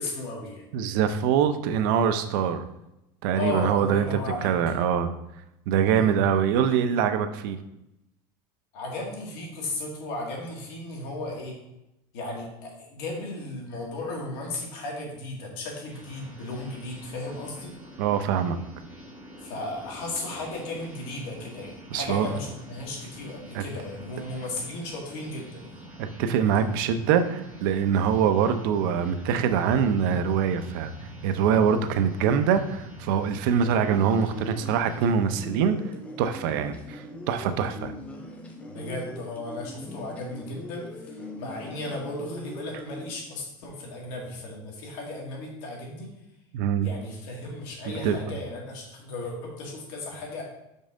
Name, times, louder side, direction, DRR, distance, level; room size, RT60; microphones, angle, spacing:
voice 1, 0.0-0.6 3.4-4.5 5.9-6.1 8.7-11.6 12.1-17.7 19.4-25.7 38.7-46.1 46.8-50.4, left 2 dB, 65° left, -1 dB, 1.9 m, -35 dB
voice 2, 0.7-2.6 3.2-4.1 4.4-5.1 5.7-7.6 18.0-18.6 21.9-22.3 23.5-23.6 26.0-30.9 31.2-35.8 36.2-37.9 46.5-46.9 47.9-48.2, right 7 dB, 85° right, 9 dB, 0.6 m, -24 dB
sound 1, 15.9-35.0, right 1 dB, 15° right, 1.5 m, -45 dB
sound 2, 33.8-43.1, left 1 dB, 10° left, 0.5 m, -41 dB
5.4 x 5.2 x 3.7 m, 0.88 s
cardioid pair, 180°, 11 cm